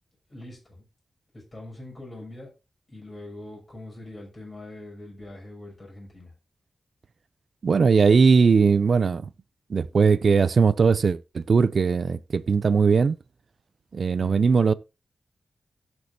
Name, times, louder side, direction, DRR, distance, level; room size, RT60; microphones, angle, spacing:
voice 1, 0.3-0.8 1.3-2.5 2.9-6.3 14.2-14.5, left 1 dB, 35° left, 6.5 m, -42 dB
voice 2, 7.6-9.3 9.7-13.2 13.9-14.7, right 5 dB, 65° right, 0.5 m, -19 dB
17.5 x 6.2 x 2.7 m
wide cardioid pair, 95°, 0 cm